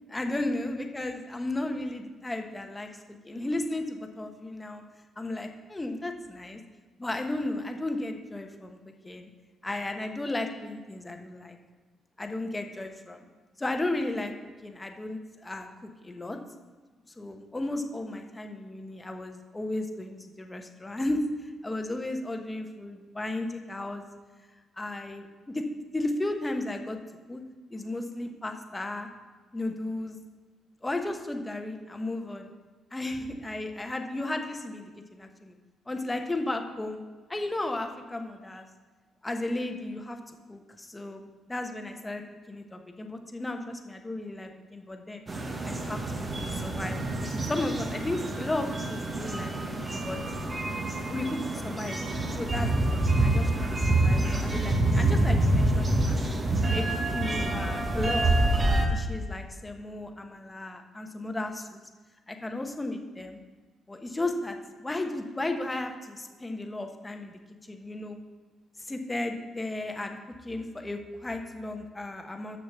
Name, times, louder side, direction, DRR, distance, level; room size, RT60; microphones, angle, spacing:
voice 1, 0.1-4.8 5.2-6.6 7.0-9.3 9.6-11.6 12.2-13.2 13.6-14.3 14.6-16.4 17.2-24.0 24.8-25.6 25.9-27.0 27.3-27.4 27.7-29.1 29.5-30.2 30.8-32.5 32.9-35.6 35.9-37.0 37.3-38.7 39.2-41.2 41.5-42.2 42.5-45.2 45.6-46.0 46.5-49.5 49.8-50.2 51.1-52.0 52.4-53.5 53.9-56.3 56.7-56.8 57.1-58.3 58.6-61.8 62.3-63.4 63.9-68.2 68.8-70.2 70.4-72.6, left 2 dB, 20° left, 5 dB, 1.2 m, -34 dB
sound 1, 45.3-58.9, right 2 dB, 35° right, 1.4 m, -27 dB
6.8 x 6.6 x 6.8 m, 1.3 s
supercardioid pair, 55°, 0 cm